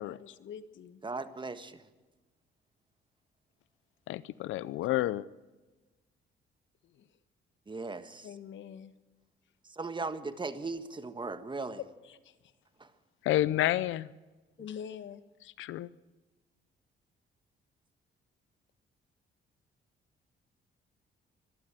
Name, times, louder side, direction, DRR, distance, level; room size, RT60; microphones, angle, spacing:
voice 1, 0.0-1.0 6.8-7.2 8.2-8.9 12.0-12.5 14.6-15.2, left 8 dB, 70° left, 1.4 m, -46 dB
voice 2, 1.0-1.8 7.7-8.3 9.7-11.8 12.8-12.9, right 3 dB, 25° right, 1.5 m, -38 dB
voice 3, 4.1-5.2 13.2-14.1 15.6-15.9, left 14 dB, 85° left, 0.6 m, -29 dB
23.5 x 13.5 x 9.0 m
cardioid pair, 90°, 20 cm